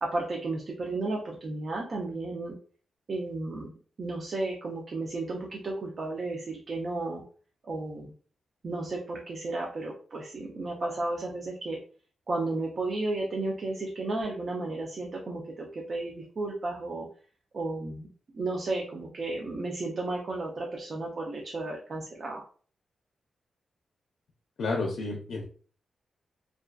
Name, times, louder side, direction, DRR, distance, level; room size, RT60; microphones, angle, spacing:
voice 1, 0.0-2.5 3.1-3.7 4.0-7.2 7.6-8.1 8.6-11.8 12.3-17.1 17.5-18.1 18.3-22.4, right 2 dB, 45° right, -1 dB, 0.4 m, -33 dB
voice 2, 24.6-25.4, left 3 dB, 75° left, 1 dB, 0.5 m, -30 dB
2.4 x 2.3 x 2.2 m, 0.42 s
wide cardioid pair, 135°, 0 cm